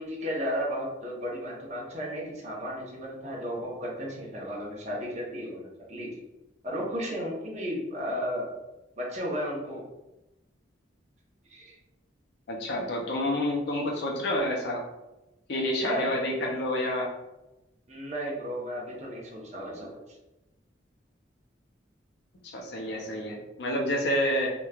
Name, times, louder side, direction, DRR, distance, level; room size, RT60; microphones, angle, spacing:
voice 1, 0.0-6.1 6.6-8.5 9.0-9.8 11.5-11.8 15.8-16.1 17.9-19.9, equal, 40° right, -3 dB, 0.7 m, -34 dB
voice 2, 12.5-14.8 15.5-17.1 22.4-24.5, left 1 dB, 60° left, -1 dB, 0.4 m, -29 dB
3.0 x 2.1 x 2.3 m, 0.98 s
head